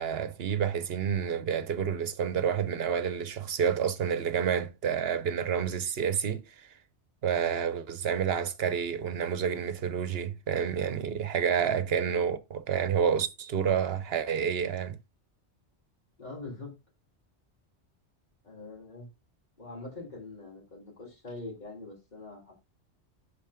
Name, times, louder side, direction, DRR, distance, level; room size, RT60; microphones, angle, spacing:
voice 1, 0.0-6.7 7.2-15.0, right 7 dB, 65° right, 1.0 m, -29 dB
voice 2, 16.2-16.8 18.4-19.1 19.6-22.7, left 3 dB, 40° left, 3.5 m, -43 dB
11.5 x 4.3 x 3.6 m
omnidirectional pair, 1.2 m